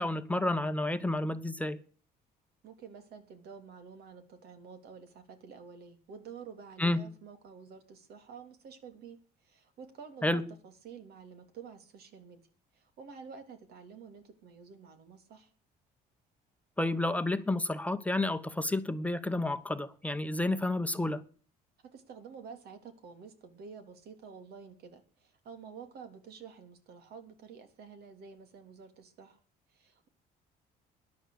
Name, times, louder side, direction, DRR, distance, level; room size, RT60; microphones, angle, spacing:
voice 1, 0.0-1.8 6.8-7.0 10.2-10.4 16.8-21.2, left 2 dB, 10° left, 1.0 m, -30 dB
voice 2, 2.6-12.4 12.7-15.5 21.9-29.4 29.7-30.1, right 6 dB, 70° right, 3.2 m, -50 dB
13.5 x 10.5 x 6.7 m
cardioid pair, 110°, 17 cm